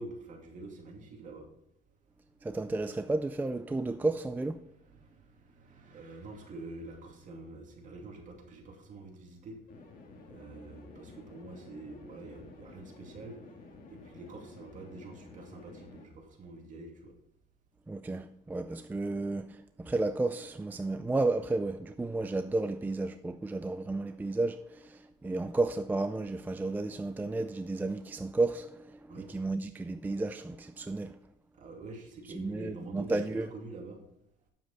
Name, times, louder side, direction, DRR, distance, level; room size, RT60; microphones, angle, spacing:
voice 1, 0.0-1.5 4.9-9.6 10.2-13.4 13.9-17.1 29.1-29.3 31.5-34.0, right 2 dB, 50° right, 2.6 m, -47 dB
voice 2, 2.4-4.6 17.9-31.2 32.3-33.5, right 2 dB, 10° right, 0.4 m, -32 dB
sound 1, 9.7-16.0, left 3 dB, 55° left, 1.9 m, -52 dB
9.1 x 7.3 x 4.1 m
cardioid pair, 110°, 17 cm